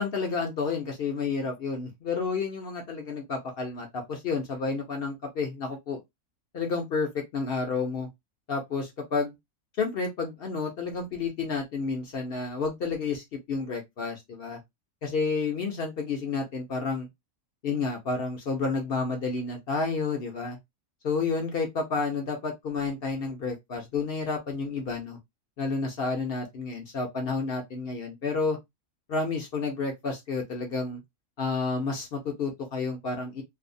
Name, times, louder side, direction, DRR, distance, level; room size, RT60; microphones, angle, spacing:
voice 1, 0.0-6.0 6.5-8.1 8.5-9.3 9.8-14.6 15.0-17.1 17.6-20.6 21.0-25.2 25.6-28.6 29.1-31.0 31.4-33.4, left 4 dB, 55° left, 0.7 m, -30 dB
2.6 x 2.1 x 2.5 m
omnidirectional pair, 1.4 m